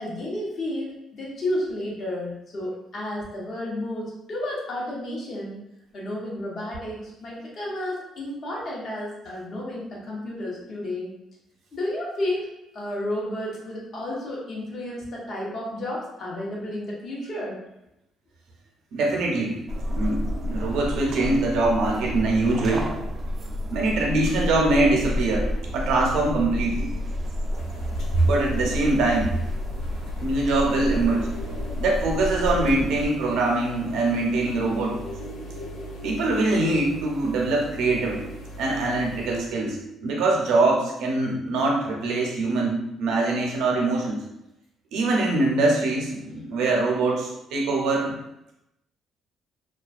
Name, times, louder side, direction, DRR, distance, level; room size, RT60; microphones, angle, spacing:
voice 1, 0.0-5.6 5.9-11.1 11.7-12.5 12.7-17.6, left 1 dB, 55° left, -4 dB, 0.8 m, -32 dB
voice 2, 18.9-19.6 19.9-22.9 23.7-26.9 28.1-29.3 30.2-31.3 31.8-35.0 36.0-38.2 38.6-44.2 44.9-48.1, right 2 dB, 85° right, -1 dB, 0.6 m, -23 dB
sound 1, 19.7-33.1, left 1 dB, 45° right, 0.3 m, -30 dB
Fridge cooling, 27.5-39.4, equal, 80° left, 0.4 m, -39 dB
2.3 x 2.2 x 2.4 m, 0.86 s
cardioid pair, 95°, 0 cm